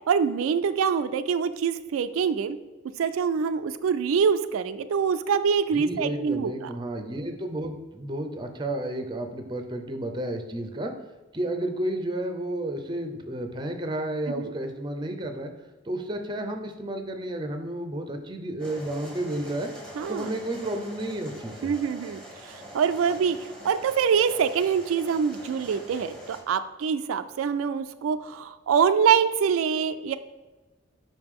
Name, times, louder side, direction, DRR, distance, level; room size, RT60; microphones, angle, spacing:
voice 1, 0.1-2.6 3.0-6.7 14.3-14.5 20.0-20.3 21.6-23.4 23.6-30.2, right 6 dB, 85° right, 10 dB, 0.3 m, -25 dB
voice 2, 5.8-10.9 11.3-15.5 15.9-19.7 20.1-21.7, right 1 dB, 20° right, 6 dB, 0.5 m, -32 dB
sound 1, 18.6-26.4, equal, 5° left, 1.0 m, -44 dB
5.3 x 4.9 x 3.6 m, 1.2 s
head